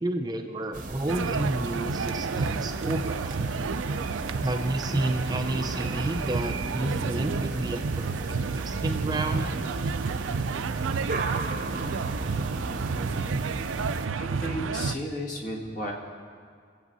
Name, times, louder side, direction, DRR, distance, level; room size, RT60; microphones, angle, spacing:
voice 1, 0.0-3.4 4.4-9.5, right 1 dB, 20° right, 4 dB, 0.5 m, -30 dB
sound 1, 0.7-14.1, right 2 dB, 40° right, 0.8 m, -36 dB
sound 2, 1.1-15.0, right 5 dB, 90° right, 0.5 m, -31 dB
voice 2, 14.1-15.9, equal, 40° left, -1 dB, 1.8 m, -33 dB
24.0 x 8.2 x 4.1 m, 2.1 s
head